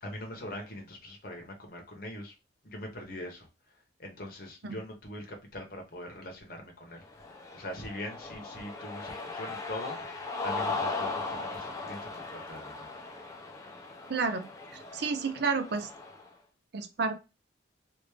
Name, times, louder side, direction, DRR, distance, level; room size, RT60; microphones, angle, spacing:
voice 1, 0.0-2.3 2.6-3.5 4.0-12.9, left 1 dB, 50° left, 1.0 m, -42 dB
Cheering, 7.0-16.3, left 3 dB, 15° left, 0.5 m, -38 dB
voice 2, 14.1-14.5 14.9-15.9 16.7-17.2, right 4 dB, 55° right, 0.5 m, -30 dB
3.4 x 2.5 x 3.2 m
head